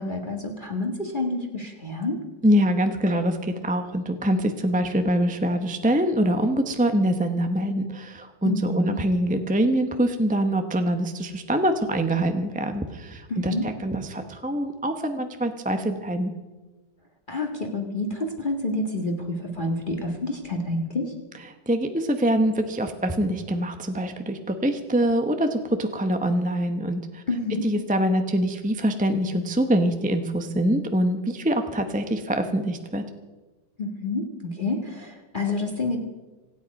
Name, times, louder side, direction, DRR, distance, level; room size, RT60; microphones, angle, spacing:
voice 1, 0.0-2.2 8.4-9.0 13.3-13.7 17.3-21.1 27.3-27.6 33.8-36.0, left 2 dB, 25° left, 2 dB, 1.8 m, -28 dB
voice 2, 2.4-16.3 21.7-27.2 27.6-33.0, right 1 dB, 10° right, 6 dB, 0.6 m, -24 dB
26.0 x 9.1 x 5.3 m, 1.2 s
omnidirectional pair, 2.0 m